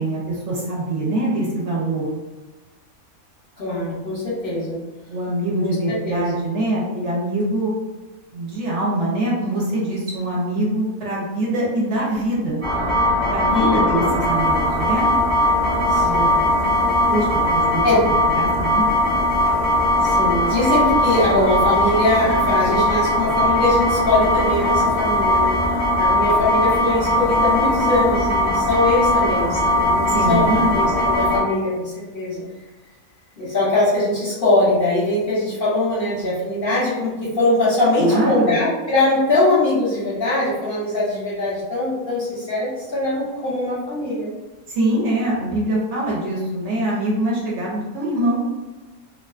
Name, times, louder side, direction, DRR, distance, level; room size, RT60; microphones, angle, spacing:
voice 1, 0.0-2.1 5.1-7.7 8.3-12.6 13.3-15.1 15.8-16.3 17.1-17.8 18.3-18.8 30.1-30.8 38.0-38.6 44.7-48.4, right 1 dB, 65° right, -5 dB, 0.8 m, -23 dB
voice 2, 3.6-4.8 5.6-5.7 6.0-6.4 13.5-14.1 15.9-16.4 17.8-18.0 20.0-32.4 33.4-44.3, left 2 dB, 55° left, -8 dB, 0.6 m, -21 dB
sound 1, 12.6-31.4, left 1 dB, 10° left, 0.4 m, -19 dB
2.4 x 2.3 x 2.3 m, 1.2 s
omnidirectional pair, 1.5 m